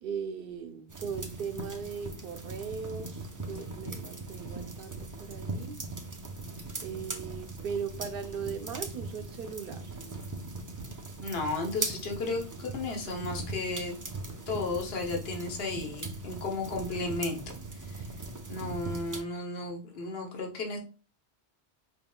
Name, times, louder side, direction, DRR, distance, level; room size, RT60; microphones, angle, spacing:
voice 1, 0.0-5.8 6.8-9.9, right 6 dB, 60° right, 8 dB, 0.8 m, -38 dB
sound 1, 0.9-19.2, right 3 dB, 25° right, 0.4 m, -40 dB
voice 2, 11.2-13.9 14.5-17.4 17.7-18.0 18.5-20.8, left 3 dB, 60° left, 2 dB, 1.2 m, -34 dB
4.8 x 3.5 x 2.2 m, 0.35 s
omnidirectional pair, 1.1 m